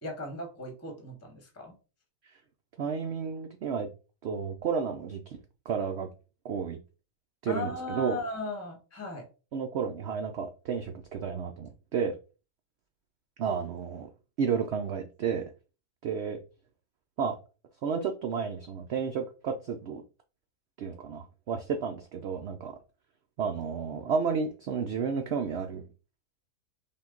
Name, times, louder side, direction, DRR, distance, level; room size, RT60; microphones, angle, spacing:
voice 1, 0.0-1.7 7.5-9.3, left 1 dB, 10° left, 2 dB, 0.9 m, -37 dB
voice 2, 2.8-3.9 4.2-5.4 5.7-6.1 6.4-6.8 7.4-8.2 9.5-12.2 13.4-14.1 14.4-15.4 16.0-16.4 17.2-17.4 17.8-20.0 20.8-22.8 23.4-25.8, right 6 dB, 65° right, 5 dB, 0.6 m, -32 dB
5.6 x 2.3 x 3.7 m, 0.33 s
omnidirectional pair, 1.6 m